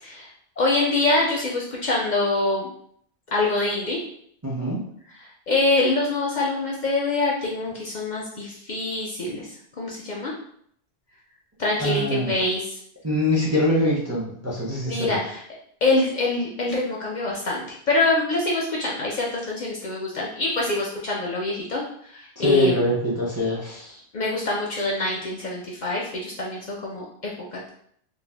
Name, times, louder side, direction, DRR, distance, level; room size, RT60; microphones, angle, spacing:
voice 1, 0.6-2.7 3.3-4.0 5.5-9.5 9.8-10.3 11.6-12.8 14.9-15.4 15.8-21.8 22.1-22.8 24.1-27.7, left 2 dB, 60° left, -3 dB, 0.5 m, -25 dB
voice 2, 4.4-4.8 11.8-12.3 13.0-15.2 22.4-24.0, left 1 dB, 25° right, -5 dB, 0.4 m, -23 dB
2.6 x 2.1 x 3.2 m, 0.66 s
omnidirectional pair, 1.1 m